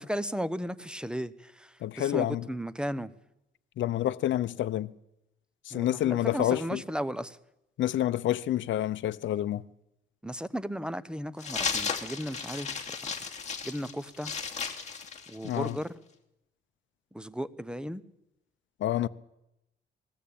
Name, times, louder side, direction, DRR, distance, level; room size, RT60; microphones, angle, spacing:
voice 1, 0.0-3.1 5.7-7.4 10.2-12.8 13.6-14.3 15.3-15.9 17.1-18.0, equal, 5° right, 0.9 m, -35 dB
voice 2, 1.8-2.5 3.8-4.9 5.7-6.8 7.8-9.6 15.4-15.8 18.8-19.1, left 13 dB, 70° left, 0.7 m, -28 dB
sound 1, 11.4-15.8, left 5 dB, 35° left, 2.9 m, -35 dB
20.5 x 16.0 x 8.7 m
cardioid pair, 90°, 20 cm